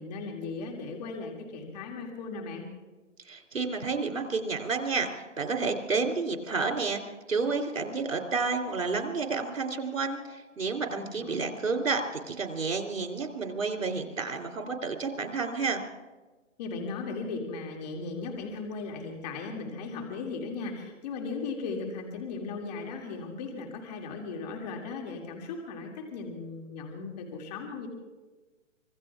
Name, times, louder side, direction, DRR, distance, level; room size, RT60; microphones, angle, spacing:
voice 1, 0.0-2.7 10.9-11.5 16.6-27.9, left 4 dB, 30° left, 2 dB, 2.3 m, -37 dB
voice 2, 3.3-7.0 7.3-15.8, right 4 dB, 85° right, 3 dB, 3.0 m, -30 dB
25.0 x 21.5 x 2.4 m, 1.2 s
hypercardioid pair, 150°, 38 cm